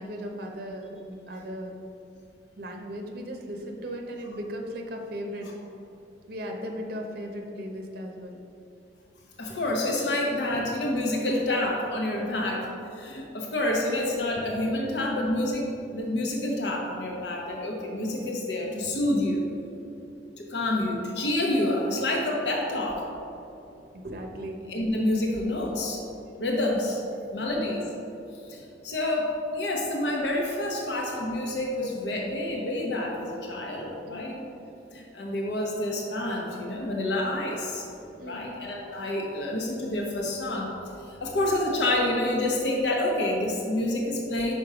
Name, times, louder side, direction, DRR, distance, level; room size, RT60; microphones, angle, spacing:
voice 1, 0.0-1.8 2.6-5.5 6.3-8.4 10.5-10.7 12.2-12.5 14.3-14.4 18.8-19.0 19.8-20.1 22.2-22.3 23.9-24.6 27.4-27.6 34.1-34.4 38.2-38.5, equal, 60° right, 2 dB, 0.8 m, -37 dB
voice 2, 9.4-15.7 15.9-19.4 20.4-23.1 24.7-26.0 26.4-27.0 27.3-27.9 28.5-34.4 34.9-37.9 38.2-40.7 41.1-44.5, left 1 dB, 80° left, 0 dB, 0.9 m, -28 dB
5.5 x 5.1 x 4.9 m, 2.8 s
head